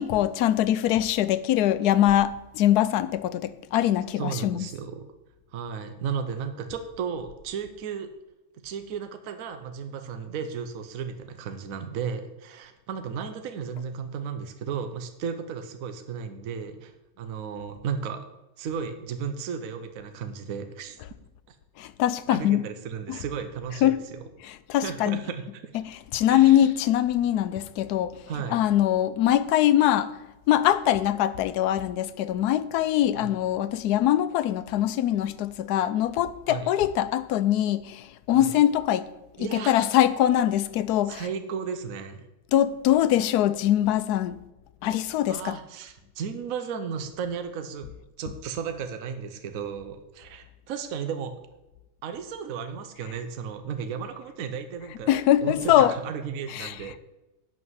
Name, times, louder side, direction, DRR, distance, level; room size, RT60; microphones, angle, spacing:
voice 1, 0.0-4.7 21.8-22.6 23.1-23.2 23.8-24.0 24.7-25.2 25.7-25.9 26.1-28.2 28.5-30.2 30.5-39.1 39.5-41.2 42.5-44.4 44.8-45.6 55.1-55.9 56.5-56.7, left 12 dB, 85° left, 1.1 m, -23 dB
voice 2, 4.2-5.0 5.5-8.1 8.6-16.9 17.2-18.3 18.6-21.0 21.5-21.6 22.3-24.2 24.8-25.8 26.3-26.6 28.3-28.6 33.1-33.3 36.5-36.7 38.3-38.5 39.4-39.7 41.1-42.2 45.3-47.9 48.2-51.3 52.0-55.1 55.4-57.0, right 6 dB, 65° right, 1.2 m, -34 dB
11.0 x 5.1 x 7.9 m
omnidirectional pair, 1.6 m